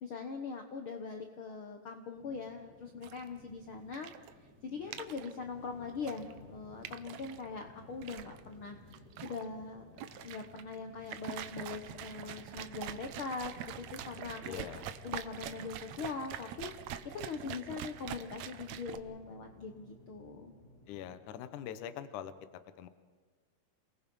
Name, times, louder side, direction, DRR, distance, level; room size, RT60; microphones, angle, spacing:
voice 1, 0.0-4.1 4.4-8.8 9.2-14.6 15.0-16.7 17.1-20.5, left 4 dB, 85° left, 4 dB, 1.1 m, -42 dB
sound 1, 2.1-21.2, left 3 dB, 30° left, 2.0 m, -57 dB
sound 2, 3.0-19.0, right 10 dB, 90° right, 1.5 m, -45 dB
voice 2, 14.4-14.9 20.9-22.3 22.8-22.9, left 10 dB, 65° left, 11 dB, 2.3 m, -43 dB
28.5 x 19.5 x 5.5 m, 1.5 s
omnidirectional pair, 4.3 m